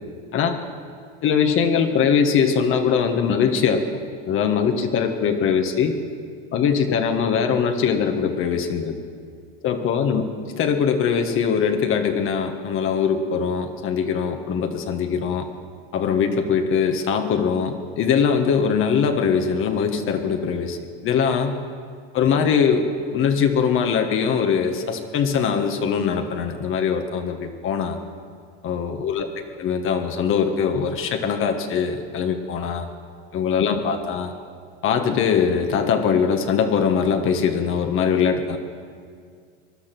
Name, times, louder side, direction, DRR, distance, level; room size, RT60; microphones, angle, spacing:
voice 1, 1.2-3.8 4.2-6.0 6.5-9.0 9.6-10.2 10.5-15.5 15.9-20.8 21.0-21.6 22.1-28.0 28.6-29.3 29.6-32.9 33.3-34.3 34.8-38.6, left 6 dB, 45° left, 5 dB, 1.5 m, -21 dB
20.0 x 11.5 x 6.0 m, 2.1 s
hypercardioid pair, 100°, 30 cm